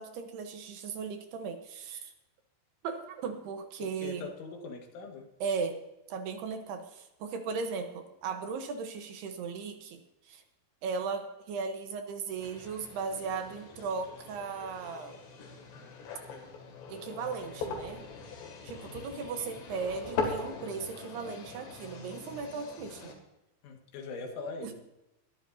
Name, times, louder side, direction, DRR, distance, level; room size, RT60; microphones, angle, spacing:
voice 1, 0.0-2.1 2.8-4.3 5.4-5.8 6.1-10.4 10.8-15.1 16.9-18.0 18.6-23.1 24.6-24.7, right 5 dB, 70° right, 6 dB, 2.8 m, -37 dB
voice 2, 3.8-5.3 18.9-19.3 23.6-24.7, left 4 dB, 85° left, 3 dB, 4.2 m, -42 dB
sound 1, 12.4-23.1, left 4 dB, 70° left, 4.2 m, -41 dB
21.0 x 12.0 x 2.7 m, 0.92 s
omnidirectional pair, 5.3 m